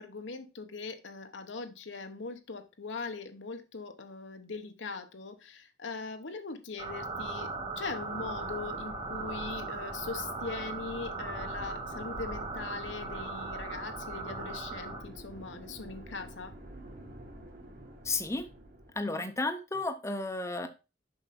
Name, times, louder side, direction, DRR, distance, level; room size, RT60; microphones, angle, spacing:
voice 1, 0.0-16.5 19.0-19.2, left 4 dB, 80° left, 1.1 m, -41 dB
sound 1, 6.8-15.0, right 3 dB, 35° right, 1.9 m, -38 dB
sound 2, 8.1-19.0, right 1 dB, 50° right, 1.9 m, -48 dB
voice 2, 18.0-18.5 19.0-20.7, left 2 dB, 15° left, 0.7 m, -32 dB
6.9 x 5.5 x 4.2 m
head